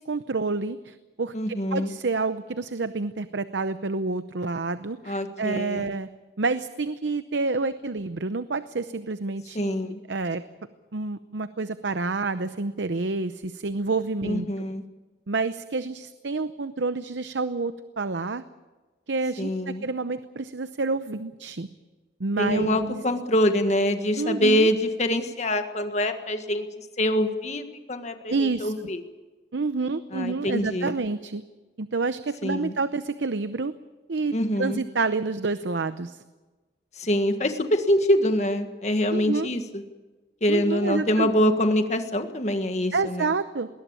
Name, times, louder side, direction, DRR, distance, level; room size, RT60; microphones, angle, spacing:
voice 1, 0.0-6.1 6.4-9.7 10.1-10.4 10.9-14.5 15.3-18.4 19.1-21.7 22.2-23.0 24.2-24.7 28.3-28.7 29.5-31.4 31.8-33.7 34.1-36.2 39.1-39.5 40.5-41.3 42.9-43.7, right 3 dB, 80° right, 12 dB, 0.7 m, -28 dB
voice 2, 1.3-1.9 5.0-5.9 9.5-10.0 14.2-14.8 19.4-19.9 22.4-29.0 30.1-31.0 32.4-32.8 34.3-34.8 37.0-39.8 40.4-43.3, left 1 dB, 40° left, 7 dB, 1.7 m, -25 dB
21.0 x 18.5 x 8.8 m, 1.2 s
head